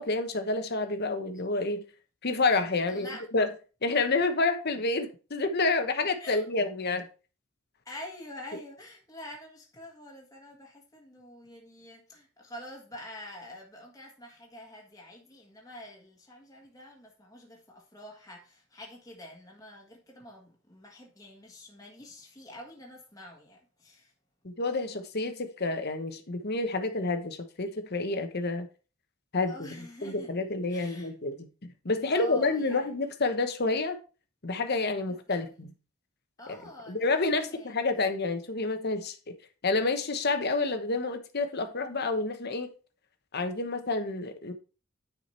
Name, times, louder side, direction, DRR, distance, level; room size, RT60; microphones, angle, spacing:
voice 1, 0.0-1.8 2.2-3.5 3.8-7.1 24.4-28.7 29.3-31.5 31.8-34.0 34.4-35.7 36.9-39.2 39.6-42.7 43.3-44.5, left 3 dB, 50° left, 1.1 m, -29 dB
voice 2, 2.9-3.2 6.2-6.4 7.8-24.1 29.5-30.3 30.7-31.1 32.1-32.9 35.3-35.4 36.4-37.8, left 1 dB, 15° left, 1.5 m, -46 dB
9.7 x 4.9 x 4.4 m
head